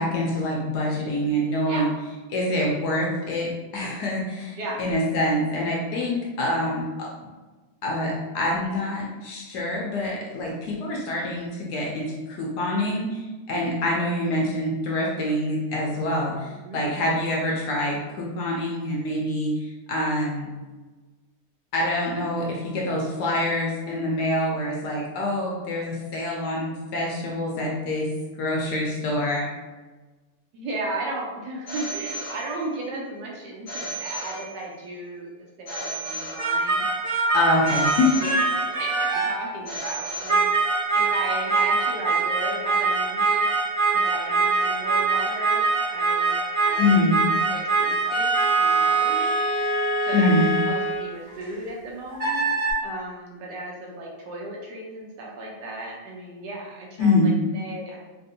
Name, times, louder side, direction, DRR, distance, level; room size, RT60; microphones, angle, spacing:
voice 1, 0.0-1.9 2.3-7.1 7.8-13.2 13.5-16.3 16.7-19.6 19.9-20.5 21.7-28.1 28.4-29.5 37.3-38.1 46.8-47.1 50.1-50.5 57.0-57.3, left 1 dB, 70° left, -2 dB, 1.1 m, -25 dB
voice 2, 16.2-16.8 30.5-35.3 35.6-36.8 37.5-40.4 40.9-43.5 43.9-47.2 47.5-49.3 50.0-52.5 52.8-58.0, right 2 dB, 75° right, -2 dB, 1.1 m, -35 dB
Telephone, 31.7-32.9 33.7-34.9 35.7-36.9 37.7-38.9 39.7-40.9, right 1 dB, 50° left, 0.5 m, -35 dB
sound 1, 36.4-39.5 40.3-51.5 52.1-52.7, right 3 dB, 50° right, 0.7 m, -23 dB
3.3 x 2.5 x 2.6 m, 1.2 s
omnidirectional pair, 2.0 m